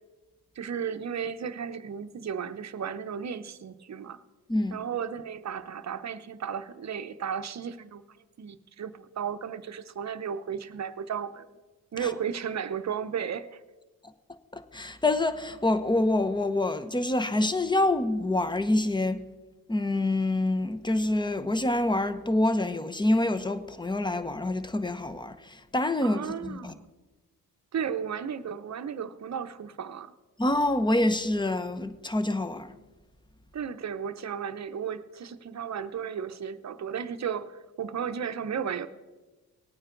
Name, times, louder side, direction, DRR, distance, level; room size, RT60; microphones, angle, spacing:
voice 1, 0.6-4.2 4.7-11.5 11.9-13.6 26.0-26.9 27.7-30.1 33.5-38.9, right 7 dB, 50° right, 0.8 m, -34 dB
voice 2, 4.5-4.8 12.0-12.1 14.5-19.2 19.7-26.7 30.4-32.7, left 2 dB, 10° left, 0.8 m, -26 dB
18.5 x 9.0 x 3.9 m
cardioid pair, 70°, 36 cm